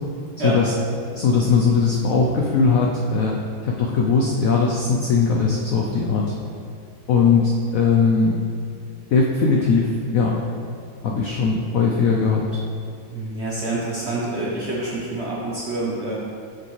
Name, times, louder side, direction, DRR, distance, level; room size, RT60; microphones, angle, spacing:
voice 1, 0.4-0.7 1.1-6.3 7.1-8.4 9.1-10.4 11.0-12.6, left 5 dB, 80° left, -2 dB, 0.7 m, -19 dB
voice 2, 13.1-16.2, right 2 dB, 50° right, -5 dB, 0.8 m, -27 dB
6.7 x 6.6 x 3.2 m, 2.4 s
omnidirectional pair, 2.1 m